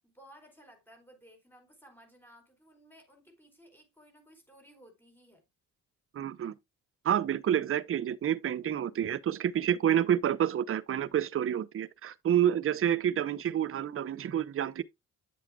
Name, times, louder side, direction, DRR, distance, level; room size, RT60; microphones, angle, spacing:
voice 1, 0.0-5.5, equal, 5° left, 4.4 m, -57 dB
voice 2, 6.1-6.5 7.0-14.8, right 10 dB, 45° right, 0.8 m, -28 dB
9.3 x 7.5 x 2.3 m
cardioid pair, 90°, 30 cm